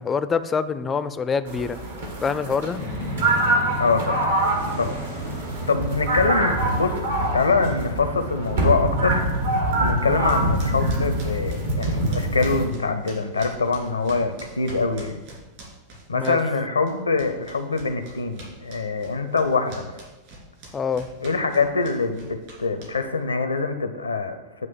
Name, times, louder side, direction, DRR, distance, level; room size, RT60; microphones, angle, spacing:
voice 1, 0.0-1.8 2.2-2.8 16.1-16.4 20.7-21.1, left 5 dB, 20° left, 12 dB, 0.4 m, -25 dB
sound 1, 1.5-12.6, right 1 dB, 65° right, 1.3 m, -25 dB
sound 2, 2.7-9.3, equal, 85° right, 2.0 m, -35 dB
voice 2, 3.8-4.1 4.8-5.0 5.7-7.1 7.3-9.2 9.8-15.2 16.1-20.0 21.2-24.7, left 4 dB, 75° left, 9 dB, 0.6 m, -24 dB
sound 3, 10.2-16.6 16.9-23.2, right 2 dB, 50° right, 2.7 m, -43 dB
9.0 x 3.0 x 5.9 m, 1.1 s
figure-of-eight pair, 90°, 0 cm